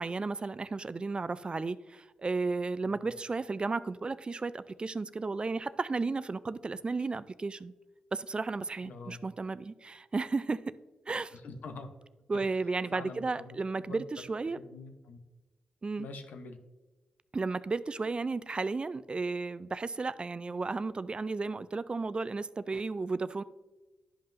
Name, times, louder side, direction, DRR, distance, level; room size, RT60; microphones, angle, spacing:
voice 1, 0.0-7.7 8.1-10.6 11.1-11.4 12.3-14.6 15.8-16.1 17.3-23.4, right 3 dB, 35° right, 0.4 m, -33 dB
voice 2, 8.8-9.2 11.3-11.9 12.3-12.4 12.9-14.0 14.5-15.2 16.0-16.6, left 3 dB, 75° left, 0.8 m, -45 dB
11.0 x 5.3 x 2.6 m
supercardioid pair, 45°, 3 cm